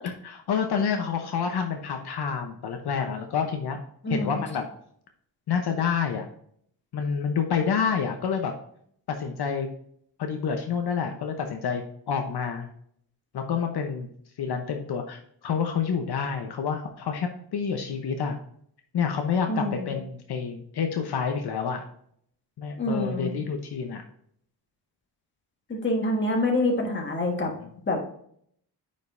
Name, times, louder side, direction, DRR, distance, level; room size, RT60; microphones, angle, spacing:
voice 1, 0.0-3.8 4.1-4.6 5.5-6.3 6.9-8.5 9.1-9.7 10.2-12.7 13.3-14.1 14.4-18.4 18.9-21.8 22.6-24.0 27.6-27.7, left 6 dB, 70° left, 4 dB, 0.9 m, -28 dB
voice 2, 4.0-4.4 19.5-19.8 22.8-23.3 25.7-27.5 27.9-28.0, left 1 dB, 25° left, 1 dB, 1.6 m, -26 dB
9.4 x 5.3 x 2.6 m, 0.65 s
wide cardioid pair, 165°, 41 cm